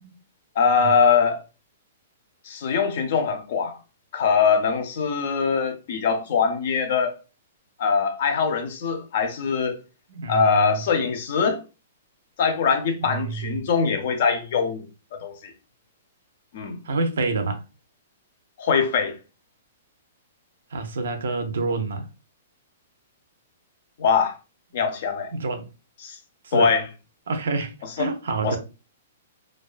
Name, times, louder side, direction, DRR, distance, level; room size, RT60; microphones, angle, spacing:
voice 1, 0.6-1.4 2.5-3.8 4.1-7.1 7.8-9.8 10.3-11.6 12.4-14.8 15.1-15.5 16.5-16.8 18.6-19.1 24.0-24.4 24.7-25.3 26.0-26.1 26.5-26.8 28.0-28.1 28.4-28.6, left 6 dB, 45° left, 0.5 m, -22 dB
voice 2, 10.1-10.9 13.0-13.6 16.8-17.6 20.7-22.1 25.3-25.7 26.4-26.7 27.3-28.6, right 3 dB, 80° right, 0.5 m, -28 dB
2.2 x 2.2 x 2.4 m
hypercardioid pair, 170°, 0 cm